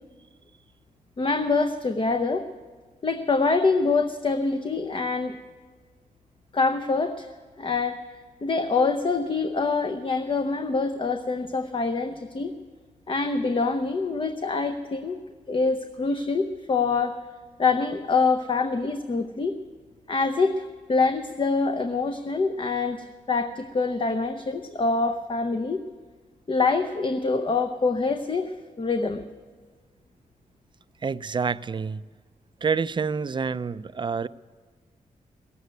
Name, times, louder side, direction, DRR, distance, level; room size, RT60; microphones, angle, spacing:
voice 1, 1.2-2.4 3.0-5.3 6.5-7.3 7.6-8.0 8.4-12.6 13.1-15.2 15.5-17.2 17.6-19.6 20.1-20.6 20.9-25.8 26.5-29.2, left 4 dB, 35° left, 6 dB, 0.7 m, -25 dB
voice 2, 31.0-32.0 32.6-34.3, right 5 dB, 35° right, 15 dB, 0.4 m, -27 dB
17.0 x 8.1 x 9.5 m, 1.5 s
cardioid pair, 90°, 14 cm